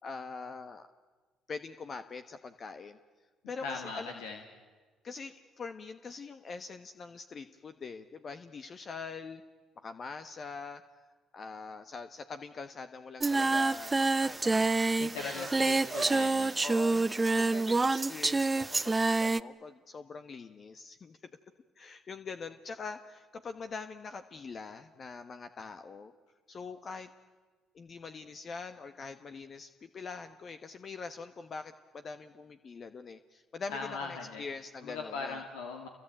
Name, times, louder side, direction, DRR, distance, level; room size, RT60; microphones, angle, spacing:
voice 1, 0.0-0.8 1.5-3.0 3.5-4.2 5.0-9.4 9.8-10.8 11.3-15.7 16.6-21.2 21.8-26.1 26.5-27.1 27.7-35.4, left 4 dB, 45° left, 9 dB, 1.2 m, -43 dB
voice 2, 3.6-4.4 15.0-16.5 33.7-34.4 34.8-35.9, left 4 dB, 85° left, 3 dB, 2.4 m, -39 dB
Singing, 13.2-19.4, right 3 dB, 25° right, 0.8 m, -27 dB
27.5 x 23.0 x 8.9 m, 1.4 s
supercardioid pair, 65°, 0 cm